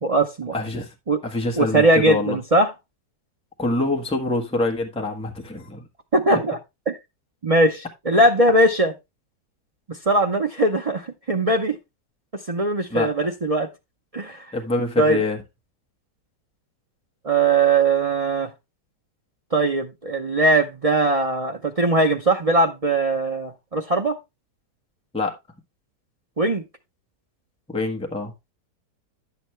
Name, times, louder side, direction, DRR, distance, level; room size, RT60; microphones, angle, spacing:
voice 1, 0.0-0.5 1.1-1.2 1.6-2.7 6.1-6.6 6.9-7.0 7.4-8.9 9.9-11.8 12.5-13.7 14.1-14.5 15.0-15.2 17.2-18.5 19.5-24.2 26.4-26.6, right 2 dB, 55° right, 0.3 m, -20 dB
voice 2, 0.5-0.9 1.2-2.4 3.6-5.8 12.9-13.1 14.5-15.4 25.1-25.3 27.7-28.3, left 2 dB, 5° left, 1.1 m, -25 dB
10.5 x 7.0 x 3.2 m
omnidirectional pair, 1.8 m